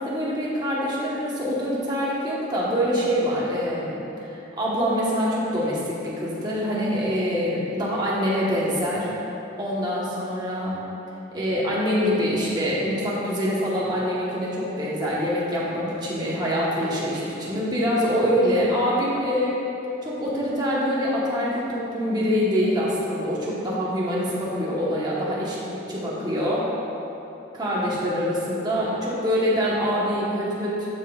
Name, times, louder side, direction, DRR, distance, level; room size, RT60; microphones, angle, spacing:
voice 1, 0.0-9.1 9.6-10.8 11.3-19.6 20.0-26.7 27.5-30.9, equal, 20° right, -7 dB, 1.1 m, -25 dB
10.5 x 5.1 x 2.4 m, 3.0 s
head